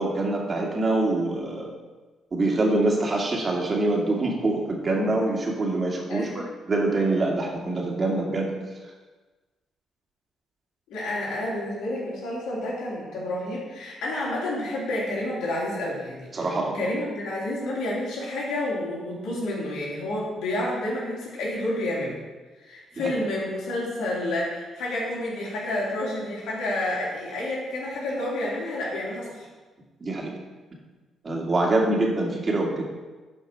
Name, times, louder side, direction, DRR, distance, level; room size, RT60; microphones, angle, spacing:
voice 1, 0.0-1.7 2.3-8.5 16.3-16.8 23.0-23.1 30.0-30.3 31.2-32.8, right 2 dB, 40° right, -1 dB, 2.3 m, -25 dB
voice 2, 6.1-6.4 10.9-16.5 16.7-22.2 22.7-29.5, left 1 dB, 80° left, -5 dB, 3.2 m, -29 dB
11.0 x 5.1 x 4.6 m, 1.3 s
supercardioid pair, 65°, 0 cm